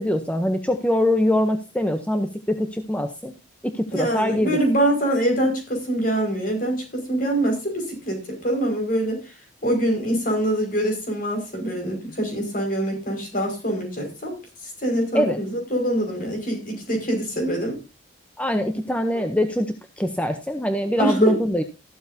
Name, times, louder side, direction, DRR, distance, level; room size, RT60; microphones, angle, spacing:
voice 1, 0.0-3.3 3.6-4.6 15.1-15.4 18.4-21.6, left 1 dB, 5° left, 6 dB, 0.7 m, -23 dB
voice 2, 3.9-9.2 9.6-14.4 14.8-17.8 19.1-19.2 21.0-21.4, right 1 dB, 45° left, 3 dB, 5.4 m, -24 dB
14.5 x 12.5 x 2.7 m, 0.28 s
head